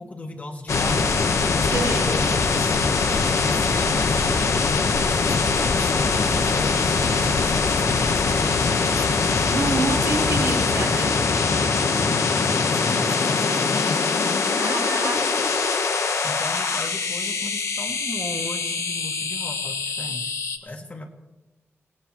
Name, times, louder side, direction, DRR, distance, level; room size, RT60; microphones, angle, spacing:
voice 1, 0.0-4.5 5.1-9.5 10.0-11.0 11.9-14.1 16.2-20.3 20.6-21.1, left 2 dB, 30° left, 3 dB, 1.7 m, -36 dB
sound 1, 0.7-20.6, left 4 dB, 80° left, 1.2 m, -22 dB
voice 2, 1.7-2.1 9.5-11.2 14.6-15.5, right 4 dB, 80° right, -1 dB, 3.1 m, -28 dB
26.5 x 17.5 x 3.1 m, 1.1 s
wide cardioid pair, 165°, 5 cm